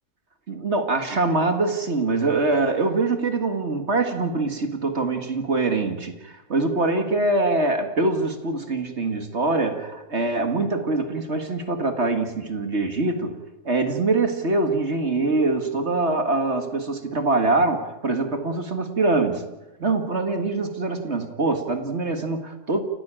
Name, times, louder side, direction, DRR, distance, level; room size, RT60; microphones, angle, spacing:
voice 1, 0.5-19.5 19.8-22.8, right 3 dB, 45° right, 7 dB, 2.0 m, -24 dB
29.5 x 12.0 x 8.9 m, 1.1 s
omnidirectional pair, 1.6 m